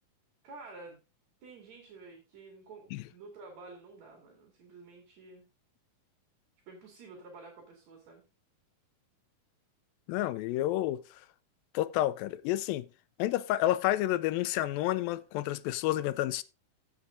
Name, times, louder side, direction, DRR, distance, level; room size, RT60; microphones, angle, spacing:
voice 1, 0.4-1.0 1.4-5.4 6.7-8.2, right 3 dB, 55° right, 3.4 m, -50 dB
voice 2, 10.1-11.0 11.7-12.9 13.2-16.4, left 14 dB, 90° left, 2.4 m, -30 dB
15.5 x 6.8 x 2.6 m
omnidirectional pair, 4.0 m